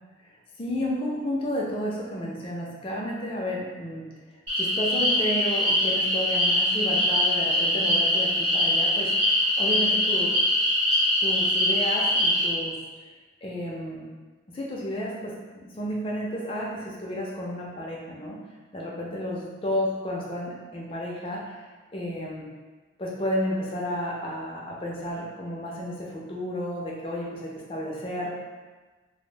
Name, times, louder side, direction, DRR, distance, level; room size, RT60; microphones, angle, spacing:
voice 1, 0.6-4.0 4.6-10.4 11.2-12.8 13.4-14.0 14.5-18.4 18.7-21.6 21.9-22.5 23.0-28.3, equal, 25° left, -4 dB, 0.4 m, -32 dB
sound 1, 4.5-12.5, left 1 dB, 25° right, 1.0 m, -23 dB
2.4 x 2.0 x 3.2 m, 1.3 s
head